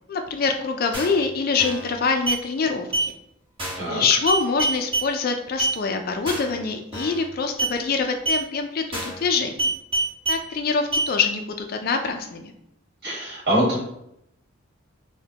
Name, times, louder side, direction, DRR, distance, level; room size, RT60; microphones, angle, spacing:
voice 1, 0.1-3.1 3.9-9.7 10.3-11.4 11.7-12.5, left 4 dB, 45° left, 5 dB, 0.3 m, -25 dB
sound 1, 0.9-1.2 1.6-1.9 2.3-2.4 2.9-3.1 3.6-3.9 4.3-5.1 5.6-5.8 6.3-6.6 6.9-7.2 7.6-7.8 8.3-8.4 8.9-9.2 9.6-10.4 10.9-11.1, right 2 dB, 25° right, 1.3 m, -25 dB
voice 2, 13.0-13.8, equal, 50° right, -5 dB, 1.4 m, -23 dB
5.0 x 2.2 x 2.7 m, 0.78 s
head